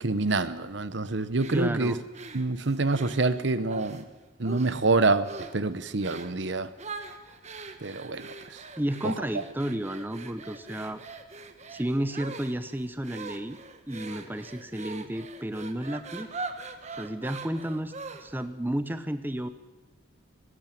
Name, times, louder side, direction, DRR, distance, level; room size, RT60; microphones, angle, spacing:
voice 1, 0.0-2.0 2.3-4.0 4.4-6.7 7.8-8.6 9.0-9.1, right 3 dB, 60° right, 14 dB, 1.0 m, -27 dB
sound 1, 1.4-4.0 4.4-4.9 5.2-5.6 6.0-6.4 6.8-18.5, right 3 dB, 35° right, 1.4 m, -42 dB
voice 2, 1.5-2.0 8.8-11.0 11.7-13.6 13.9-16.3 17.0-17.9 18.2-19.5, right 1 dB, 10° right, 10 dB, 0.8 m, -32 dB
19.5 x 16.0 x 9.2 m, 1.2 s
head